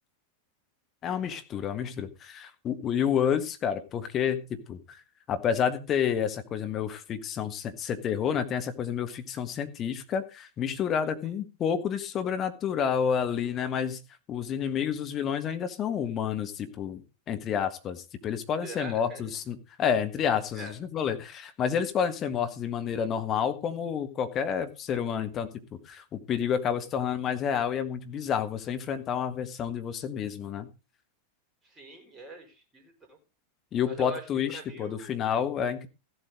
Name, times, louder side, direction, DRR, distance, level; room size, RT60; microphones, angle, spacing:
voice 1, 1.0-5.0 5.3-14.0 14.3-17.0 17.3-30.7 33.7-35.9, left 8 dB, 30° left, 8 dB, 1.6 m, -29 dB
voice 2, 18.6-19.4 20.5-20.7 31.6-33.2 33.8-34.3 34.5-35.2, right 3 dB, 15° right, 3 dB, 4.9 m, -43 dB
15.0 x 8.0 x 5.1 m, 0.31 s
figure-of-eight pair, 90°, 0 cm